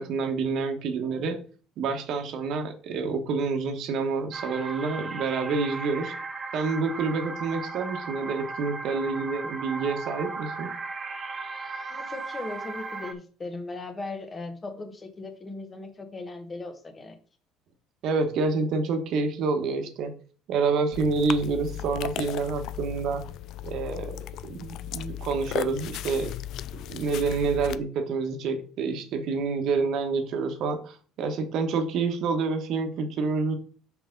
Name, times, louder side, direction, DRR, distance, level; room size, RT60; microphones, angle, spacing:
voice 1, 0.0-1.4 1.8-6.1 6.5-10.7 18.0-20.1 20.5-23.2 23.6-24.1 24.5-26.3 26.9-33.6, right 4 dB, 60° right, 6 dB, 1.3 m, -28 dB
sound 1, 4.3-13.1, right 4 dB, 25° right, 0.6 m, -36 dB
voice 2, 11.9-17.2, left 3 dB, 20° left, 7 dB, 1.2 m, -38 dB
sound 2, 20.9-27.8, left 12 dB, 60° left, 0.3 m, -36 dB
5.8 x 5.2 x 3.9 m, 0.41 s
cardioid pair, 135°, 0 cm